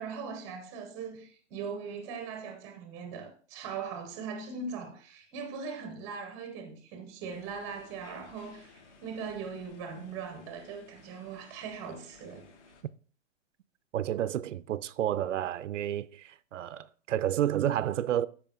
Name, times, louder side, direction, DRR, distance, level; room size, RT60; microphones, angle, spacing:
voice 1, 0.0-12.5, right 5 dB, 10° right, 0.6 m, -40 dB
sound 1, 7.3-12.8, left 4 dB, 70° left, 1.9 m, -57 dB
voice 2, 13.9-18.3, right 11 dB, 75° right, 0.6 m, -30 dB
12.5 x 4.9 x 3.7 m
hypercardioid pair, 175°, 37 cm